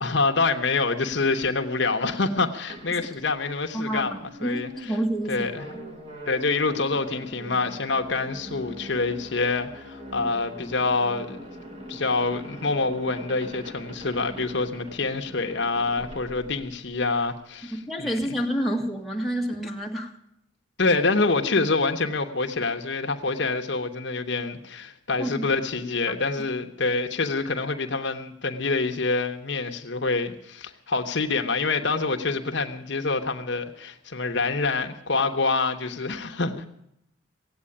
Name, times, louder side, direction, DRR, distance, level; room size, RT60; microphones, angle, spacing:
voice 1, 0.0-4.1 4.4-4.9 5.3-5.7 6.3-11.4 11.9-17.7 18.0-18.2 20.8-36.7, left 3 dB, 65° left, 6 dB, 1.0 m, -26 dB
sound 1, 2.7-17.2, equal, 30° right, 1.9 m, -42 dB
voice 2, 3.7-5.8 17.7-20.1 25.2-25.5, equal, ahead, -2 dB, 1.9 m, -29 dB
17.0 x 8.6 x 9.9 m, 0.78 s
head